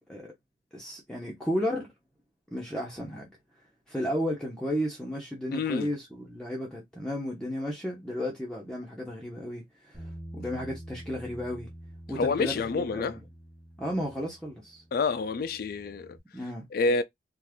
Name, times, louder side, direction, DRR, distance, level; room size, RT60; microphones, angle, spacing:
voice 1, 0.7-1.9 2.5-3.3 3.9-11.7 12.1-13.2 13.8-14.8 16.3-16.7, equal, 5° left, 0.7 m, -33 dB
voice 2, 5.5-5.9 12.2-13.2 14.9-16.2 16.7-17.0, left 4 dB, 55° left, 0.4 m, -28 dB
Bass guitar, 9.9-16.2, right 1 dB, 15° right, 1.1 m, -47 dB
2.5 x 2.4 x 3.4 m
head